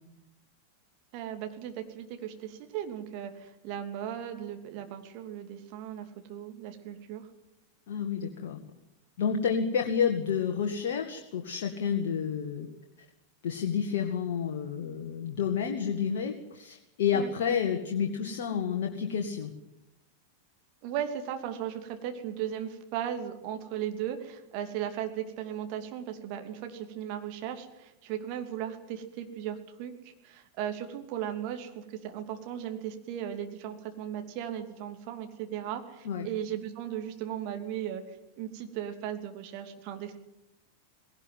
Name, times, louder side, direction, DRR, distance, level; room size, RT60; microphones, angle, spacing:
voice 1, 1.1-7.3 17.1-17.3 20.8-40.2, right 10 dB, 45° right, 6 dB, 2.8 m, -37 dB
voice 2, 7.9-8.6 9.2-12.7 13.4-19.5 36.1-36.3, left 7 dB, 55° left, 3 dB, 2.0 m, -30 dB
19.5 x 18.0 x 9.4 m, 0.89 s
figure-of-eight pair, 90°, 0 cm